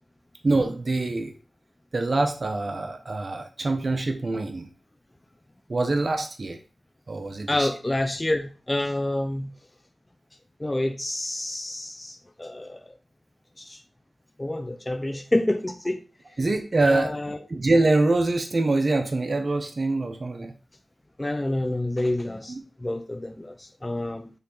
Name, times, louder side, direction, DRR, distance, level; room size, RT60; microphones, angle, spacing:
voice 1, 0.4-1.3 1.9-4.7 5.7-6.6 7.1-7.7 16.4-17.2 17.5-20.5 22.5-22.6, right 2 dB, 55° right, 6 dB, 0.9 m, -24 dB
voice 2, 7.5-9.5 10.6-12.9 13.6-13.8 14.4-16.0 16.8-17.4 21.2-24.3, left 1 dB, 25° left, 6 dB, 0.8 m, -28 dB
9.0 x 3.4 x 4.0 m, 0.34 s
cardioid pair, 40°, 0 cm